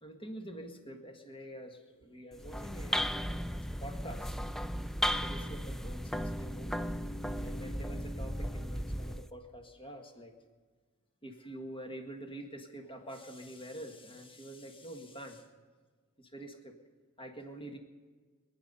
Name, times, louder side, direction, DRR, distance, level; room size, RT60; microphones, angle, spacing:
voice 1, 0.0-3.1 3.8-4.4 5.1-6.9 7.4-10.4 11.2-15.5 16.2-16.7 17.2-17.8, right 1 dB, 25° left, 3 dB, 1.8 m, -46 dB
sound 1, 2.3-9.3, equal, ahead, 0.4 m, -35 dB
25.0 x 9.3 x 5.6 m, 1.5 s
head